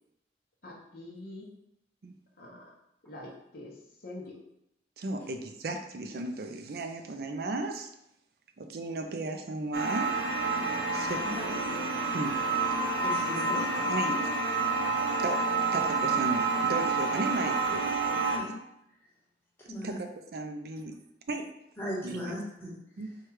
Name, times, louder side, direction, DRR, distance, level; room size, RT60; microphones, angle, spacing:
voice 1, 0.6-1.5 2.4-2.6 3.0-3.7 4.0-4.3, left 2 dB, 55° left, -4 dB, 0.8 m, -44 dB
voice 2, 5.0-7.9 8.6-10.2 10.9-11.2 12.1-12.4 13.9-14.3 15.2-15.5 15.7-17.9 19.8-20.9 21.3-21.4 22.0-22.4 23.0-23.2, right 2 dB, 55° right, 5 dB, 0.4 m, -35 dB
sound 1, 9.7-18.4, right 3 dB, 85° right, 0.8 m, -29 dB
voice 3, 11.1-11.5 13.0-13.8 18.2-18.6 19.7-20.0 21.8-22.7, equal, 10° left, -6 dB, 1.2 m, -37 dB
4.6 x 2.3 x 4.6 m, 0.79 s
head